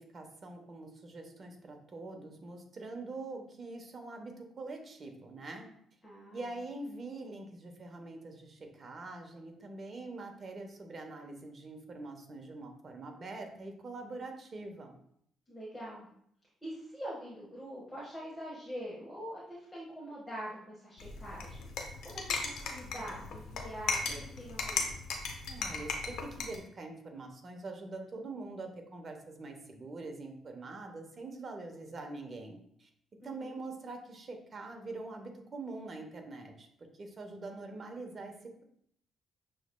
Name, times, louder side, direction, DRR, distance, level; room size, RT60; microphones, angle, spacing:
voice 1, 0.0-5.7 6.3-15.0 25.5-32.9 33.2-36.7 37.0-38.6, right 3 dB, 40° right, 3 dB, 0.9 m, -44 dB
voice 2, 6.0-6.5 15.5-16.1 16.6-21.7 22.0-24.9 33.2-33.6, equal, 10° left, -7 dB, 1.3 m, -44 dB
sound 1, 21.0-26.6, left 4 dB, 80° left, 0.7 m, -37 dB
6.4 x 3.1 x 2.2 m, 0.68 s
cardioid pair, 90°, 0 cm